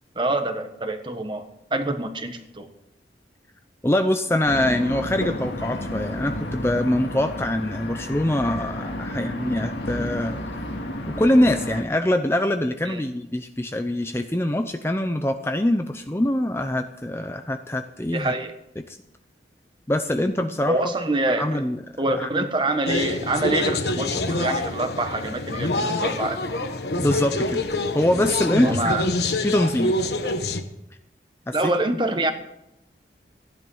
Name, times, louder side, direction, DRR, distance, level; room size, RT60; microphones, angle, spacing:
voice 1, 0.1-2.7 12.9-13.0 18.1-18.5 20.7-21.6 22.0-26.7 28.6-29.1 31.5-32.3, right 2 dB, 25° right, 7 dB, 1.3 m, -26 dB
voice 2, 3.8-10.4 11.1-18.3 18.9-19.0 19.9-20.9 21.4-21.8 22.1-22.5 27.0-27.6 27.9-29.9 31.5-31.7, left 1 dB, 15° left, 7 dB, 0.6 m, -24 dB
sound 1, 4.4-11.8, left 1 dB, 90° left, 2.0 m, -32 dB
sound 2, 22.9-30.6, left 2 dB, 70° left, 1.3 m, -26 dB
15.5 x 11.0 x 5.6 m, 0.86 s
head